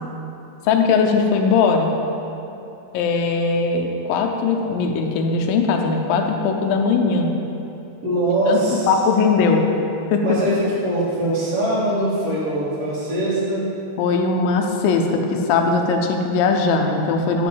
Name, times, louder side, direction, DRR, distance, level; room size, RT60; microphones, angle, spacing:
voice 1, 0.6-1.9 2.9-7.3 8.5-8.6 8.9-9.6 10.1-10.2 14.0-17.5, left 4 dB, 85° left, 3 dB, 2.0 m, -19 dB
voice 2, 8.0-8.9 10.2-10.6 10.8-13.7, right 1 dB, 60° right, -9 dB, 1.6 m, -22 dB
6.3 x 5.4 x 7.1 m, 2.8 s
omnidirectional pair, 5.0 m